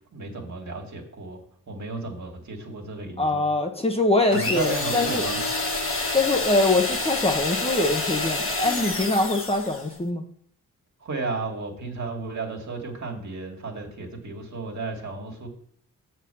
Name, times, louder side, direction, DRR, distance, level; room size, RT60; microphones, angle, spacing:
voice 1, 0.1-1.4 1.7-3.5 4.3-5.4 11.0-15.5, right 3 dB, 55° right, 1 dB, 2.0 m, -33 dB
voice 2, 3.2-5.3 6.1-10.2, left 2 dB, 15° left, 3 dB, 0.9 m, -23 dB
sound 1, 4.3-9.9, left 2 dB, 40° left, 1.5 m, -28 dB
7.0 x 4.5 x 6.8 m, 0.64 s
cardioid pair, 80°, 33 cm